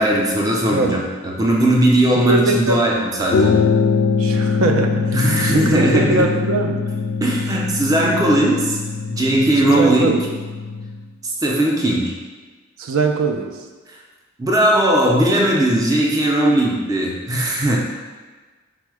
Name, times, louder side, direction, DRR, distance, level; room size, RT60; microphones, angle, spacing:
voice 1, 0.0-3.6 5.1-6.3 7.2-8.8 9.1-10.1 11.2-12.1 14.4-17.8, right 1 dB, 15° right, -1 dB, 0.4 m, -18 dB
voice 2, 0.7-1.0 2.3-2.8 4.2-6.8 9.7-10.2 12.8-13.6, right 3 dB, 90° right, 4 dB, 0.4 m, -21 dB
sound 1, 3.3-11.0, left 4 dB, 85° left, 0.4 m, -22 dB
4.5 x 2.1 x 4.6 m, 1.4 s
head